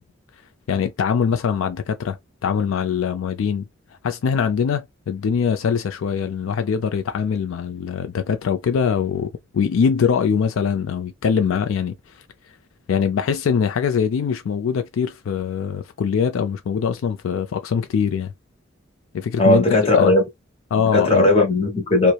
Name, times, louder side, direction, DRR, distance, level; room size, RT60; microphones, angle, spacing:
voice 1, 0.7-2.2 2.4-3.7 4.0-12.0 12.9-18.3 19.1-19.6 19.9-20.1 20.7-21.3, left 6 dB, 80° left, 0.3 m, -22 dB
voice 2, 19.4-20.2 20.9-22.1, left 2 dB, 30° left, 0.9 m, -16 dB
2.8 x 2.0 x 2.3 m
head